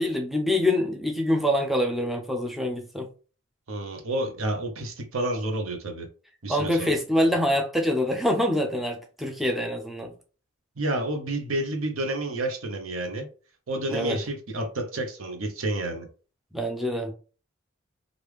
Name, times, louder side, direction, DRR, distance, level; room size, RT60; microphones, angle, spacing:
voice 1, 0.0-3.1 6.5-10.1 13.9-14.2 16.5-17.1, left 1 dB, ahead, 0.4 m, -25 dB
voice 2, 3.7-6.1 6.4-7.0 10.8-13.3 13.7-16.1, right 1 dB, 75° right, 0.8 m, -30 dB
3.2 x 2.5 x 3.2 m
head